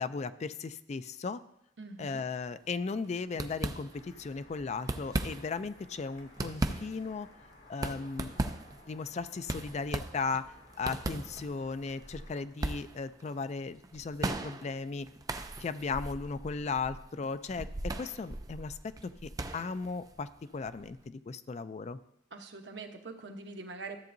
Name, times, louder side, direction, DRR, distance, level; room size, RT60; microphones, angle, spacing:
voice 1, 0.0-1.4 2.0-7.3 7.7-8.3 8.9-15.1 15.6-22.0, left 4 dB, 40° left, 13 dB, 0.4 m, -36 dB
voice 2, 1.8-2.2 22.3-24.0, right 3 dB, 80° right, 4 dB, 1.0 m, -43 dB
sound 1, 2.4-2.7 2.9-3.1 3.3-4.3 4.7-5.7 6.1-21.0, right 2 dB, 20° right, 0.4 m, -38 dB
sound 2, 3.9-12.5, left 2 dB, 80° left, 2.3 m, -57 dB
13.5 x 7.7 x 2.6 m, 0.75 s
head